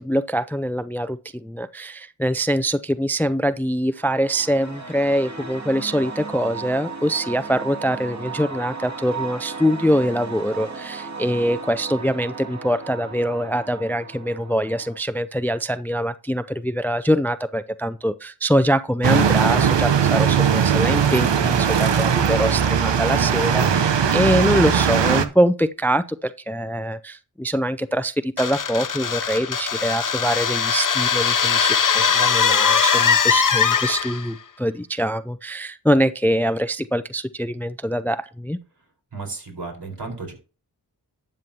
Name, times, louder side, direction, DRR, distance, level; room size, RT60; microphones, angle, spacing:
voice 1, 0.0-38.6, equal, 5° left, 0.4 m, -23 dB
sound 1, 3.9-15.0, right 4 dB, 40° right, 2.6 m, -35 dB
sound 2, 19.0-25.2, right 7 dB, 85° right, 0.9 m, -19 dB
sound 3, 28.4-34.3, left 6 dB, 50° left, 0.8 m, -20 dB
voice 2, 39.1-40.3, right 3 dB, 70° right, 4.6 m, -33 dB
12.5 x 7.6 x 2.8 m
wide cardioid pair, 50°, 42 cm